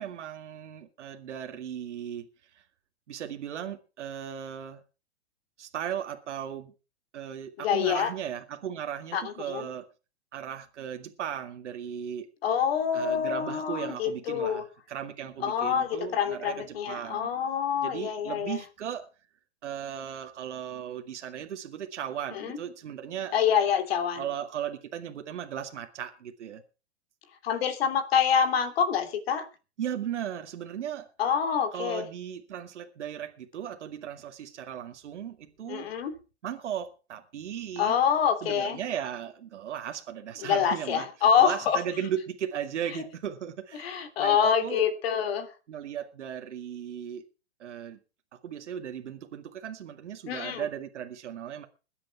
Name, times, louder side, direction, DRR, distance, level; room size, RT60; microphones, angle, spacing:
voice 1, 0.0-2.3 2.5-2.6 3.1-4.8 5.6-6.7 7.1-9.9 10.3-12.3 12.9-17.4 17.8-19.1 19.6-23.4 24.2-26.6 27.5-27.6 29.8-31.1 31.7-35.8 36.4-38.0 38.4-44.8 45.7-47.2 47.6-48.0 48.4-51.7, right 9 dB, 75° right, 2.1 m, -36 dB
voice 2, 7.6-8.1 9.1-9.7 12.4-14.6 15.4-18.6 22.3-22.6 23.3-24.2 27.4-29.5 31.2-32.0 35.7-36.1 37.8-38.8 40.4-41.8 43.7-45.5 50.3-50.6, left 8 dB, 55° left, 3.3 m, -26 dB
21.5 x 8.6 x 4.7 m
hypercardioid pair, 150°, 35 cm